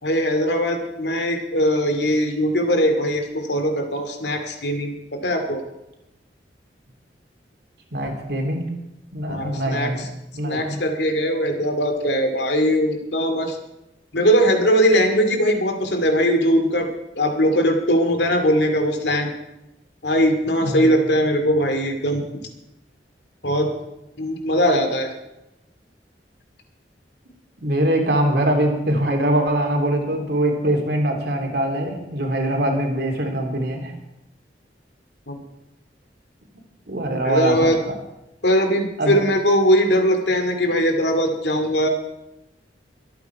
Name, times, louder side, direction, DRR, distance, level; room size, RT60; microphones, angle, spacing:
voice 1, 0.0-5.6 9.3-9.9 10.4-13.6 14.1-16.9 17.2-19.3 20.0-22.2 23.4-23.7 24.2-25.1 35.3-35.4 37.2-37.8 38.4-41.9, equal, 75° left, 5 dB, 2.4 m, -20 dB
voice 2, 7.9-8.7 9.1-10.0 10.3-10.8 20.6-21.0 27.6-33.9 36.9-37.7 39.0-39.2, right 1 dB, 60° right, 2 dB, 3.0 m, -22 dB
23.5 x 9.0 x 4.7 m, 0.90 s
head